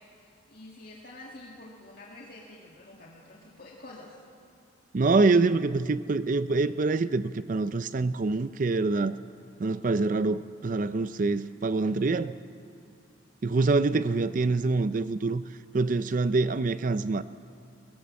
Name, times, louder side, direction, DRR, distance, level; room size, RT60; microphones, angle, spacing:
voice 1, 0.0-4.2, left 2 dB, 50° left, -3 dB, 2.2 m, -48 dB
voice 2, 4.9-9.1 9.6-12.4 13.4-15.4 15.7-17.2, right 3 dB, 40° right, 13 dB, 0.4 m, -25 dB
21.5 x 19.0 x 7.5 m, 2.4 s
head